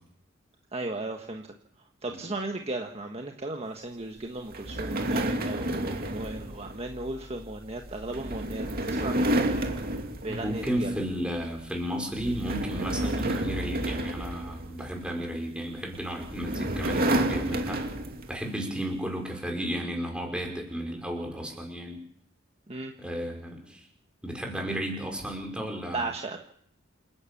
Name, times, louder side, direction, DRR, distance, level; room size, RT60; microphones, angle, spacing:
voice 1, 0.7-1.5 2.0-9.8 10.2-11.0 22.7-22.9 25.5-25.6 25.9-26.4, right 2 dB, 30° right, 3 dB, 1.5 m, -36 dB
sound 1, 4.5-11.1 11.4-11.7 12.1-15.1 15.9-18.4, right 1 dB, 50° right, 2.6 m, -30 dB
voice 2, 10.3-17.8 18.3-22.0 23.0-23.8 24.2-26.1, equal, 5° right, 2 dB, 5.6 m, -33 dB
28.0 x 11.5 x 8.6 m, 0.63 s
head